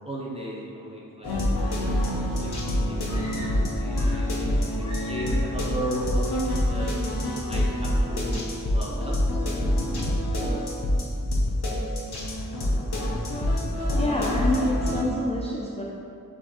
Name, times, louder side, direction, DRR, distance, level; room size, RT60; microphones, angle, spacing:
voice 1, 0.0-2.8 3.7-6.9 7.5-7.7 8.0-9.1, right 1 dB, 15° right, -5 dB, 0.9 m, -36 dB
sound 1, 1.2-15.0, left 1 dB, 80° left, 0.7 m, -26 dB
sound 2, 3.0-4.4 4.8-5.6, equal, 50° left, 0.9 m, -42 dB
voice 2, 13.9-15.8, left 1 dB, 15° left, -4 dB, 0.4 m, -27 dB
5.2 x 3.5 x 2.8 m, 2.5 s
wide cardioid pair, 45°, 38 cm